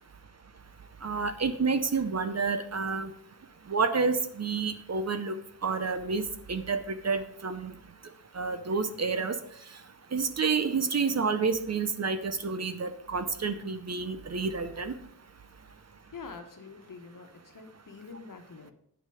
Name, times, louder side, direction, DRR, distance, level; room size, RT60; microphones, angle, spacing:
voice 1, 1.0-3.1 3.7-5.4 5.6-7.7 8.3-9.4 10.1-14.9, right 4 dB, 45° right, 10 dB, 0.7 m, -29 dB
voice 2, 16.1-18.7, left 4 dB, 55° left, 5 dB, 1.3 m, -46 dB
9.1 x 7.0 x 4.9 m, 0.68 s
wide cardioid pair, 140°, 38 cm